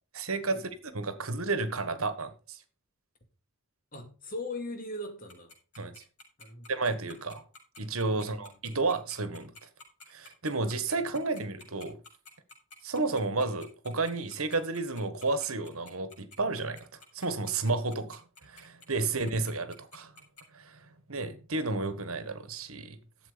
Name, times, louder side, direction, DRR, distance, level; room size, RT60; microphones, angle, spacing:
voice 1, 0.1-2.6 5.8-5.9 6.7-7.4 7.8-9.5 10.1-12.0 12.8-16.8 17.1-20.1 20.5-20.8 21.1-23.0, right 3 dB, 70° right, 1.6 m, -32 dB
voice 2, 3.9-5.5 6.4-6.7 8.1-8.5 19.0-19.2, left 2 dB, 40° left, 2.4 m, -40 dB
Tick-tock, 5.3-20.4, left 3 dB, 90° left, 6.2 m, -50 dB
12.0 x 7.8 x 5.2 m
head